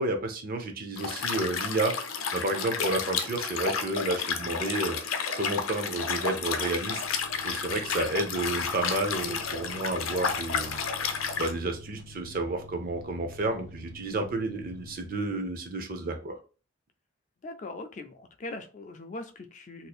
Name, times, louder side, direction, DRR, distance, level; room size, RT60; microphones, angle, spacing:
voice 1, 0.0-5.0 5.4-7.0 7.4-10.8 11.4-16.4, right 2 dB, 45° right, 5 dB, 0.6 m, -31 dB
Liquid, 1.0-11.5, left 6 dB, 90° left, 0.6 m, -31 dB
sound 1, 6.0-15.7, left 1 dB, 65° right, 1.2 m, -49 dB
voice 2, 17.4-19.9, left 2 dB, 35° left, 6 dB, 0.4 m, -40 dB
2.6 x 2.5 x 4.1 m, 0.35 s
head